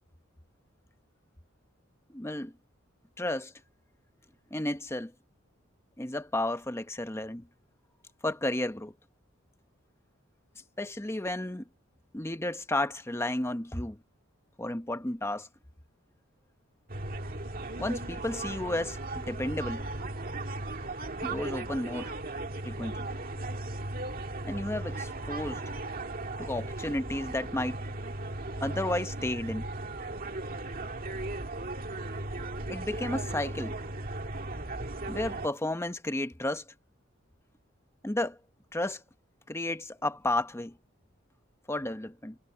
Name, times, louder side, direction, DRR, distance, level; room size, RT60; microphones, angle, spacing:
voice 1, 2.1-2.5 3.2-3.5 4.5-5.1 6.0-7.5 8.2-8.9 10.8-11.7 12.1-14.0 14.6-15.5 17.8-19.8 21.2-22.1 22.6-23.0 24.4-25.6 26.4-27.8 28.6-29.7 32.7-33.7 35.1-36.6 38.0-38.4 38.7-39.0 39.5-40.7 41.7-42.4, left 1 dB, 15° left, 1.0 m, -32 dB
sound 1, 16.9-35.5, right 2 dB, 45° right, 2.1 m, -37 dB
head